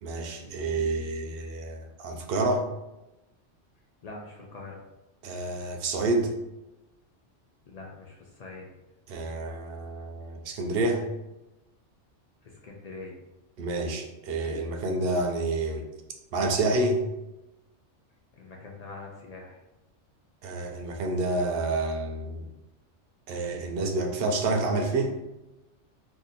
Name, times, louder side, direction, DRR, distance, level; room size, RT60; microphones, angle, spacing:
voice 1, 0.0-2.7 5.2-6.3 9.1-11.1 13.6-15.8 16.3-17.0 20.4-22.5 23.3-25.1, right 2 dB, 60° right, 3 dB, 0.7 m, -28 dB
voice 2, 4.0-4.8 7.7-8.7 12.4-13.2 18.3-19.6, left 3 dB, 65° left, -1 dB, 0.4 m, -43 dB
2.7 x 2.6 x 4.0 m, 0.98 s
omnidirectional pair, 1.2 m